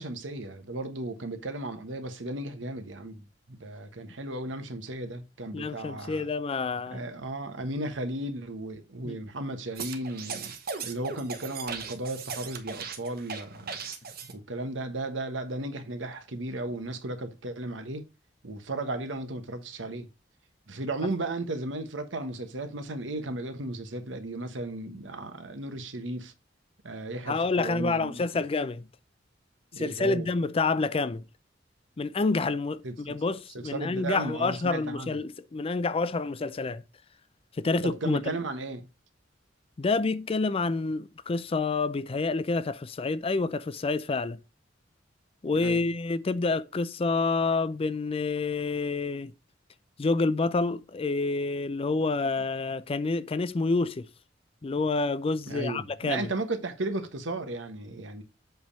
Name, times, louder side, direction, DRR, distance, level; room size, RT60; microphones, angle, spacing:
voice 1, 0.0-3.2 3.5-6.3 6.9-10.5 10.8-13.8 14.3-18.0 18.4-20.1 20.7-26.3 26.8-28.2 29.7-30.3 32.8-33.2 33.5-35.2 37.8-38.9 45.6-45.9 55.5-58.2, right 2 dB, 90° right, 1.2 m, -35 dB
voice 2, 5.5-7.0 9.0-9.2 27.3-28.9 29.8-31.2 32.0-36.8 37.6-38.4 39.8-44.4 45.4-49.3 50.0-54.1 54.6-56.3, left 3 dB, 30° left, 0.4 m, -28 dB
sound 1, 9.8-14.3, right 5 dB, 55° right, 1.0 m, -37 dB
7.8 x 3.5 x 5.4 m
head